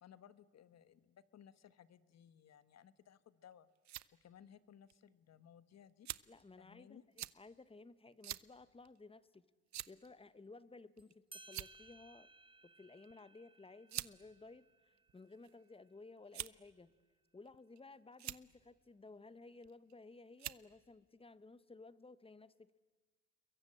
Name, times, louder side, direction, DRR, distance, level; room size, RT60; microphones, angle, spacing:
voice 1, 0.0-3.7 4.2-6.1 6.6-7.0, left 9 dB, 60° left, 15 dB, 1.3 m, -61 dB
sound 1, 3.5-4.1 4.9-5.0 6.1-6.4 7.2-7.4 8.2-8.5 8.8-9.0 9.7-10.1 11.0-11.1 11.4-11.9 13.0-13.2 13.9-14.1 15.0-15.5 16.3-16.7 17.5-17.8 18.1-18.4 19.6-19.9 20.4-20.7, right 13 dB, 65° right, 0.8 m, -45 dB
voice 2, 6.3-9.4 9.9-12.3 12.6-16.9 17.3-22.8, left 3 dB, 20° left, 16 dB, 1.1 m, -57 dB
sound 2, 11.0-11.1 11.3-16.4, right 3 dB, 15° right, 0.9 m, -62 dB
28.5 x 22.5 x 8.8 m, 1.4 s
cardioid pair, 90°, 30 cm